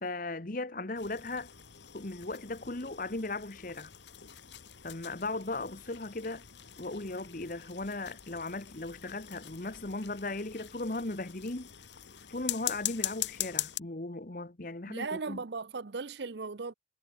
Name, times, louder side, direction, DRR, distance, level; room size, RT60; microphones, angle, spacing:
voice 1, 0.0-1.5 1.9-3.9 4.8-6.4 6.8-11.7 12.3-15.4, left 2 dB, 45° left, 1.2 m, -37 dB
sound 1, 1.0-13.8, left 13 dB, 70° left, 1.4 m, -42 dB
voice 2, 14.9-16.7, right 4 dB, 65° right, 0.7 m, -37 dB
head